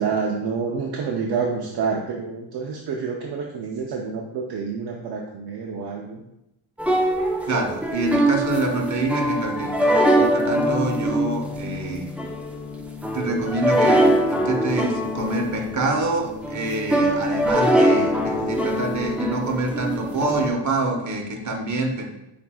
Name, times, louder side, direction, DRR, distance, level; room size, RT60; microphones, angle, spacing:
voice 1, 0.0-6.2, right 5 dB, 60° right, 0 dB, 0.6 m, -28 dB
sound 1, 6.8-20.5, equal, 5° right, 0.5 m, -23 dB
voice 2, 7.4-12.1 13.1-22.0, right 2 dB, 40° right, 2 dB, 1.1 m, -26 dB
7.0 x 2.7 x 2.3 m, 0.87 s
cardioid pair, 70°, 44 cm